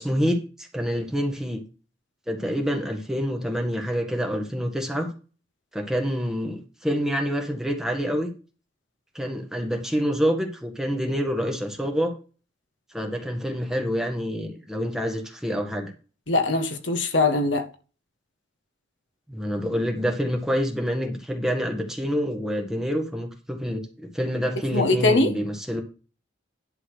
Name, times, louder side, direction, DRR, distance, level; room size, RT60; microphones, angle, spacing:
voice 1, 0.0-1.6 2.3-5.1 5.7-8.3 9.2-12.1 12.9-15.9 19.3-25.8, equal, 5° right, 1.7 m, -27 dB
voice 2, 16.3-17.7 24.7-25.3, left 2 dB, 70° left, 1.7 m, -21 dB
11.0 x 4.2 x 6.5 m
head